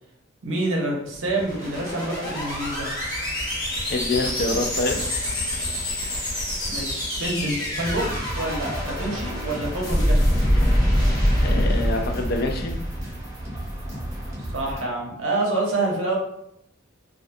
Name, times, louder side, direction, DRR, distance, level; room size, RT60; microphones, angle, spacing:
voice 1, 0.4-2.9 6.7-10.3 14.5-16.2, right 2 dB, 70° right, -1 dB, 0.7 m, -27 dB
sound 1, 1.1-13.5, equal, 20° left, 0.7 m, -25 dB
voice 2, 3.9-5.0 11.4-12.8, left 2 dB, 45° left, 4 dB, 0.3 m, -26 dB
sound 2, 7.8-14.8, right 1 dB, 15° right, 0.7 m, -33 dB
2.5 x 2.2 x 2.5 m, 0.77 s
head